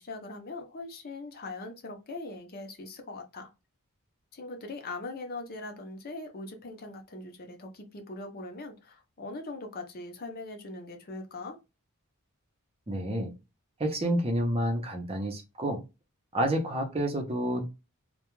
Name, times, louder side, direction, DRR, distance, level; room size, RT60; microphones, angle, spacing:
voice 1, 0.0-3.5 4.3-11.6, left 2 dB, 45° left, 0.6 m, -41 dB
voice 2, 12.9-13.3 13.8-15.8 16.3-17.6, right 1 dB, 25° right, 0.6 m, -29 dB
2.3 x 2.2 x 3.0 m
head